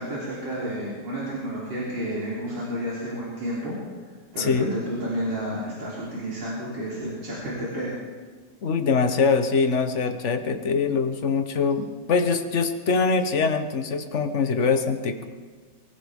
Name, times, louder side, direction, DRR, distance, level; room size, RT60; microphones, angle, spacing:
voice 1, 0.0-3.8 4.3-7.9, equal, 85° right, -8 dB, 4.2 m, -31 dB
voice 2, 4.4-4.7 8.6-15.2, left 5 dB, 45° left, 8 dB, 1.2 m, -23 dB
23.5 x 15.5 x 3.6 m, 1.5 s
omnidirectional pair, 1.9 m